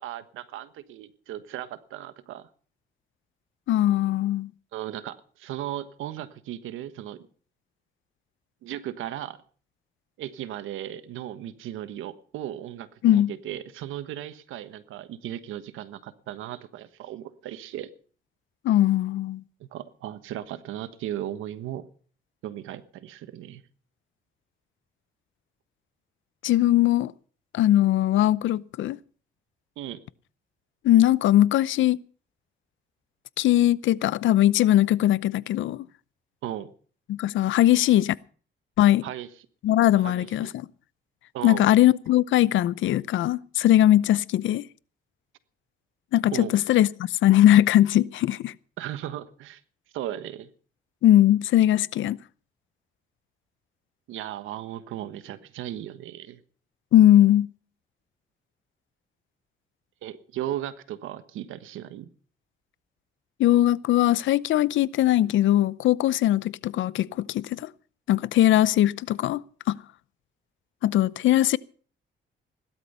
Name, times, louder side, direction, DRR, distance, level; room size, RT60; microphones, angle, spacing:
voice 1, 0.0-2.5 4.7-7.2 8.6-9.4 10.2-17.9 19.6-21.8 22.4-23.6 29.8-30.0 36.4-36.7 39.0-39.3 40.0-40.5 41.3-41.7 46.3-46.6 48.8-49.6 49.9-50.5 54.1-56.4 60.0-62.1, right 12 dB, 90° right, 1.3 m, -36 dB
voice 2, 3.7-4.5 13.0-13.3 18.6-19.4 26.4-27.1 27.5-29.0 30.8-32.0 33.4-35.9 37.1-38.1 38.8-39.1 39.6-40.7 41.4-44.6 46.1-46.9 47.2-48.5 51.0-52.2 56.9-57.5 63.4-67.7 68.1-69.4 69.7-69.8 70.8-71.6, left 13 dB, 75° left, 0.7 m, -20 dB
17.0 x 12.5 x 5.6 m
cardioid pair, 90°, 20 cm